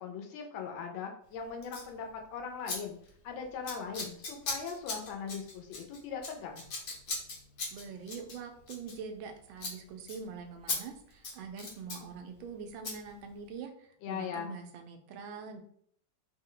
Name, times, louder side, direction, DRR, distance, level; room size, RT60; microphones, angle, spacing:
voice 1, 0.0-3.0 3.2-6.7 14.0-14.6, left 6 dB, 85° left, 3 dB, 1.4 m, -40 dB
Scissors, 1.6-1.9 2.7-2.8 3.0-3.3 3.6-9.3 9.6-9.8 10.1-10.2 10.7-10.8 11.1-12.0 12.8-13.0, left 3 dB, 60° left, 1.3 m, -38 dB
voice 2, 7.7-15.6, right 5 dB, 90° right, 5 dB, 1.4 m, -44 dB
3.7 x 2.1 x 3.7 m, 0.63 s
omnidirectional pair, 2.1 m